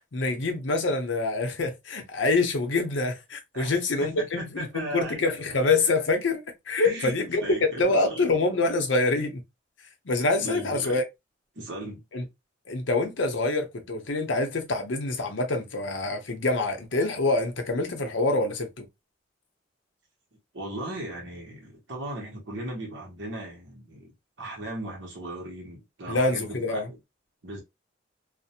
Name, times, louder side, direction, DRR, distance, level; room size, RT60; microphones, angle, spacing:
voice 1, 0.1-7.4 7.8-9.4 10.1-11.0 12.1-12.2 12.7-18.8 26.1-26.9, left 3 dB, 70° left, 0.7 m, -26 dB
voice 2, 3.5-5.8 6.8-8.3 10.4-11.0 11.5-12.0 20.5-27.0 27.4-27.6, right 1 dB, 65° right, 0.9 m, -37 dB
2.4 x 2.0 x 2.7 m
head